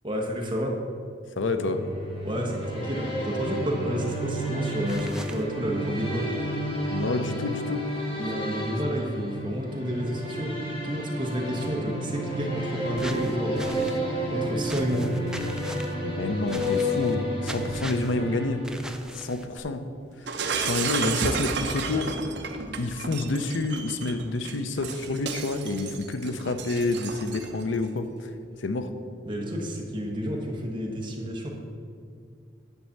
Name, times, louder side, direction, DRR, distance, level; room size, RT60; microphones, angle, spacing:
voice 1, 0.0-0.8 2.2-6.3 8.2-10.5 10.8-13.9 14.3-15.1 29.2-31.5, equal, 25° right, 0 dB, 1.2 m, -30 dB
voice 2, 1.4-1.8 6.9-7.8 16.0-18.6 19.1-19.8 20.6-22.1 22.8-28.1 28.6-28.9, left 3 dB, 90° left, 9 dB, 0.6 m, -28 dB
sound 1, 1.4-19.1, equal, 30° left, 1.7 m, -31 dB
sound 2, 4.9-5.4 13.0-14.0 14.6-15.9 16.5-17.2 17.4-18.2 18.6-19.6, right 1 dB, 5° right, 0.3 m, -41 dB
Shatter, 20.3-27.6, right 5 dB, 65° right, 0.7 m, -32 dB
9.6 x 4.2 x 7.1 m, 2.3 s
head